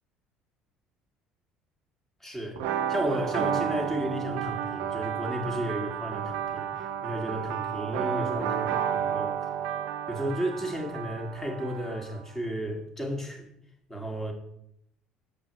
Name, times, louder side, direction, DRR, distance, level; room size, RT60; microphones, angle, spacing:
voice 1, 2.2-2.6 2.9-9.4 10.1-13.5 13.9-14.3, equal, 10° left, 2 dB, 1.7 m, -33 dB
sound 1, 2.6-12.2, right 9 dB, 60° right, 0.6 m, -31 dB
7.2 x 6.7 x 3.1 m, 0.76 s
figure-of-eight pair, 55°, 4 cm